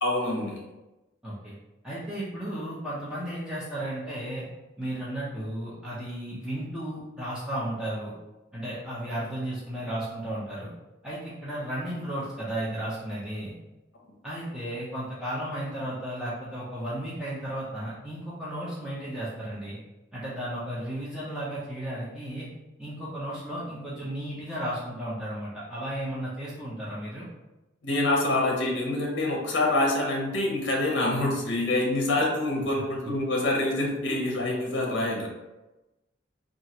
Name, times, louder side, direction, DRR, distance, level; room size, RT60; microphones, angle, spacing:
voice 1, 0.0-0.6 27.8-35.3, left 2 dB, 60° left, -1 dB, 0.7 m, -26 dB
voice 2, 1.2-1.5 1.8-4.5 4.8-8.2 8.5-10.7 11.0-13.5 14.2-19.8 20.1-22.5 22.8-27.3, right 1 dB, 5° right, -9 dB, 0.5 m, -34 dB
2.9 x 2.4 x 2.7 m, 1.0 s
head